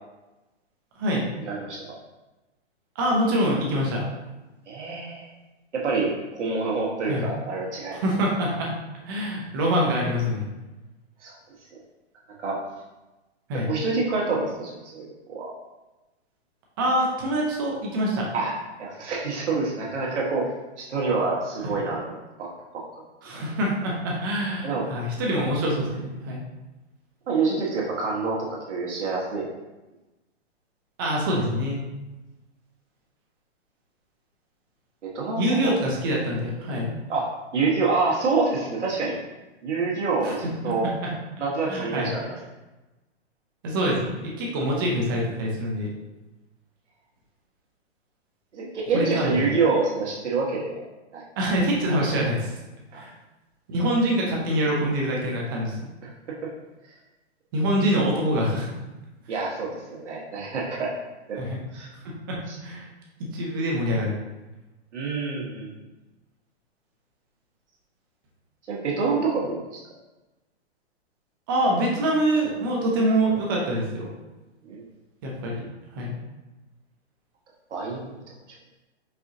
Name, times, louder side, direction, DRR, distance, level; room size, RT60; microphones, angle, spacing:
voice 1, 1.4-1.9 4.7-5.3 5.7-8.0 11.2-11.3 12.4-12.6 13.7-15.5 18.3-18.5 18.8-22.5 22.7-22.8 24.6-24.8 27.3-29.5 35.0-35.7 37.1-39.2 39.6-40.9 41.4-42.4 48.5-50.8 51.1-51.2 52.9-53.0 56.0-56.4 56.8-56.9 59.3-60.9 61.3-61.4 61.7-61.9 62.5-62.6 64.9-65.7 68.7-69.8 74.6-74.8 77.7-78.2, right 4 dB, 75° right, -4 dB, 1.3 m, -27 dB
voice 2, 3.0-4.0 7.1-7.3 7.9-8.7 9.1-10.5 13.5-13.7 16.8-18.3 23.2-26.4 31.0-31.8 35.4-36.9 40.2-40.3 40.6-41.1 41.7-42.1 43.6-45.9 48.9-49.5 51.4-52.5 52.9-53.1 53.7-55.8 57.5-58.7 61.4-61.6 62.0-62.1 62.6-62.9 63.2-64.2 71.5-74.1 75.2-75.6 75.9-76.1, equal, 20° right, -2 dB, 0.6 m, -25 dB
4.8 x 3.7 x 2.7 m, 1.1 s
hypercardioid pair, 160°, 35 cm